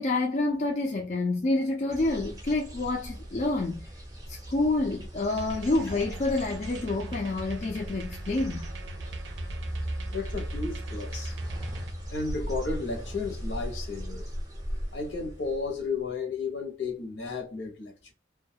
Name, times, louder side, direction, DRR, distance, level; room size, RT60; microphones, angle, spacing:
voice 1, 0.0-3.9 4.3-8.7, left 2 dB, 40° left, 0.4 m, -28 dB
sound 1, 1.9-16.0, equal, 20° right, 0.6 m, -38 dB
sound 2, 5.3-11.9, right 2 dB, 80° right, 0.5 m, -42 dB
voice 2, 10.1-11.4 12.1-14.3 14.9-18.1, left 4 dB, 75° left, 0.8 m, -33 dB
2.3 x 2.2 x 2.7 m
head